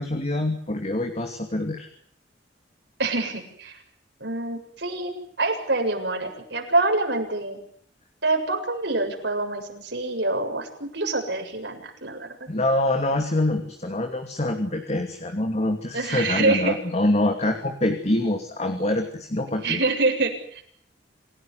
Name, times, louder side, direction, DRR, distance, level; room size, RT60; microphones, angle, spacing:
voice 1, 0.0-1.9 12.5-19.8, left 1 dB, 40° left, 5 dB, 2.8 m, -25 dB
voice 2, 3.0-3.8 4.2-7.6 8.2-12.3 15.9-16.7 19.6-20.7, right 2 dB, 70° right, 3 dB, 7.4 m, -26 dB
28.5 x 17.0 x 9.8 m, 0.63 s
head